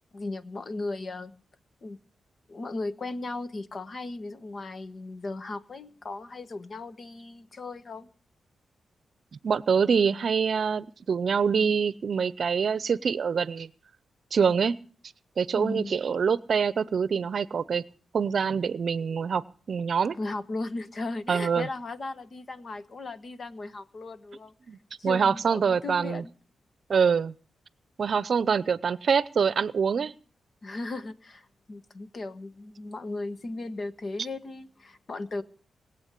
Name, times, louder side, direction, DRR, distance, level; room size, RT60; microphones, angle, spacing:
voice 1, 0.1-1.3 1.8-2.0 2.5-8.1 15.5-15.9 20.2-24.5 25.0-26.3 30.6-35.4, left 2 dB, 45° left, 13 dB, 1.2 m, -36 dB
voice 2, 9.4-13.7 14.3-14.8 15.4-17.8 18.1-20.1 21.3-21.7 24.7-24.8 25.0-26.2 26.9-27.3 28.0-30.1, right 6 dB, 60° right, 19 dB, 0.7 m, -25 dB
21.0 x 8.1 x 8.3 m, 0.42 s
cardioid pair, 80°, 0 cm